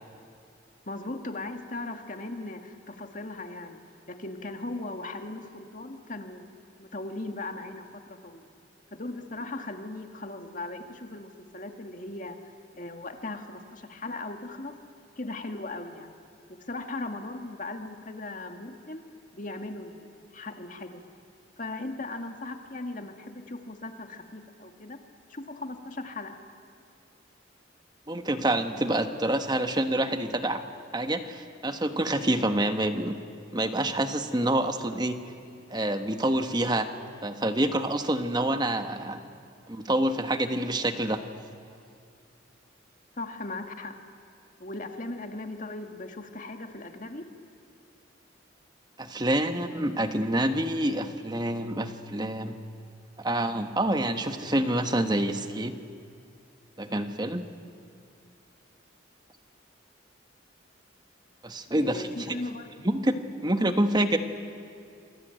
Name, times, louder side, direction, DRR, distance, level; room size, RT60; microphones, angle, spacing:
voice 1, 0.9-3.8 4.1-6.4 6.8-8.5 8.9-12.4 12.7-14.8 15.2-16.1 16.6-19.0 19.3-21.0 21.6-25.0 25.3-26.4 43.2-44.0 44.6-47.2 61.7-62.7, left 2 dB, 40° left, 5 dB, 1.9 m, -38 dB
voice 2, 28.1-30.6 30.9-33.2 33.5-35.2 35.7-39.2 39.7-41.3 49.0-52.5 53.2-55.8 56.8-57.4 61.4-62.1 62.8-64.2, right 1 dB, 20° right, 8 dB, 1.2 m, -27 dB
27.5 x 21.5 x 9.1 m, 2.5 s
head